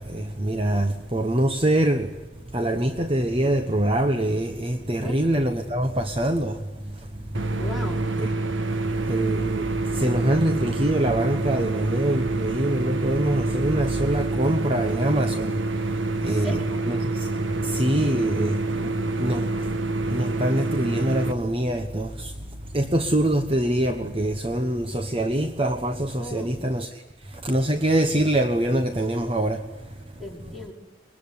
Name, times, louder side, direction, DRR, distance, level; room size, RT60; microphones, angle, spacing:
voice 1, 0.0-2.1 2.5-6.6 7.1-7.2 8.1-8.3 9.0-15.6 16.2-16.6 16.8-17.3 17.6-19.6 20.1-22.3 22.7-27.0 27.3-29.6, right 1 dB, 30° right, 1.1 m, -24 dB
sound 1, 7.3-21.3, right 2 dB, 80° right, 1.5 m, -27 dB
voice 2, 7.6-8.1 16.1-16.8 26.2-26.5 30.2-30.7, equal, ahead, 5.0 m, -37 dB
23.5 x 22.0 x 9.7 m
head